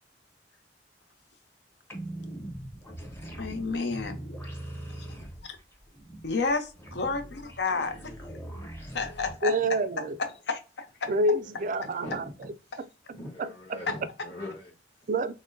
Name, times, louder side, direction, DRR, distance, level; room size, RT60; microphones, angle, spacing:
sound 1, 1.9-9.3, right 1 dB, 15° left, 0.9 m, -41 dB
voice 1, 3.4-4.2 5.4-5.6 6.2-8.0 8.9-9.6 10.5-10.9 13.9-14.0, left 4 dB, 70° left, 0.7 m, -30 dB
voice 2, 7.7-8.2 11.4-12.8 13.1-15.1, left 1 dB, 35° left, 1.3 m, -43 dB
voice 3, 9.4-10.2 11.1-12.2 12.8-13.8 15.1-15.3, right 1 dB, 45° right, 0.3 m, -28 dB
5.8 x 2.1 x 2.5 m
head